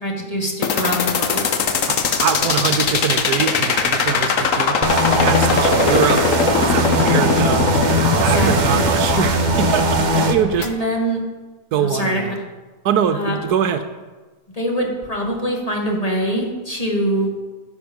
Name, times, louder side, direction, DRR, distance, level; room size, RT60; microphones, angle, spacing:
voice 1, 0.0-1.4 8.1-8.9 10.6-11.2 11.8-12.2 13.1-13.4 14.5-17.3, equal, 25° left, -1 dB, 1.6 m, -23 dB
sound 1, 0.6-10.7, left 6 dB, 55° left, 1.2 m, -20 dB
voice 2, 1.9-4.8 5.1-6.2 6.7-7.7 8.2-10.7 11.7-12.4 12.8-13.8, right 8 dB, 75° right, 9 dB, 1.1 m, -22 dB
sound 2, 4.8-10.3, right 1 dB, 35° right, 0.8 m, -19 dB
13.5 x 6.9 x 5.3 m, 1.3 s
omnidirectional pair, 1.8 m